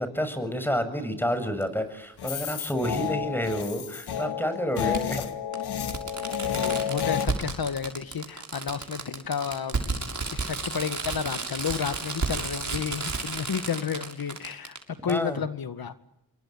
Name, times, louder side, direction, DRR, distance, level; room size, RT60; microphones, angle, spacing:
voice 1, 0.0-5.4 15.1-15.4, equal, 5° left, 10 dB, 6.9 m, -29 dB
Fireworks, 1.6-1.7 3.2-3.3 4.9-5.0 5.5-5.6 5.9-14.8 15.1-15.2, right 3 dB, 45° right, 6.8 m, -32 dB
sound 1, 2.2-7.3, left 9 dB, 80° left, 2.2 m, -30 dB
voice 2, 6.6-14.8 15.0-15.9, left 7 dB, 65° left, 12 dB, 2.1 m, -31 dB
28.0 x 23.0 x 8.7 m, 0.80 s
cardioid pair, 55°, 39 cm